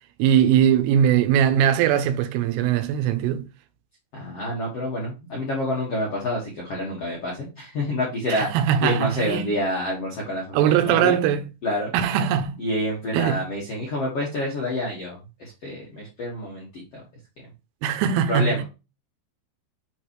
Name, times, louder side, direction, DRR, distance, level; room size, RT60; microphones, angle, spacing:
voice 1, 0.2-3.4 8.3-9.5 10.5-11.5 11.9-12.6 13.1-13.4 17.8-18.6, right 9 dB, 85° right, 3.3 m, -20 dB
voice 2, 4.1-8.5 8.8-11.2 11.6-11.9 12.6-16.8 18.3-18.6, left 1 dB, 60° left, 1.6 m, -28 dB
8.6 x 4.9 x 3.2 m
omnidirectional pair, 5.8 m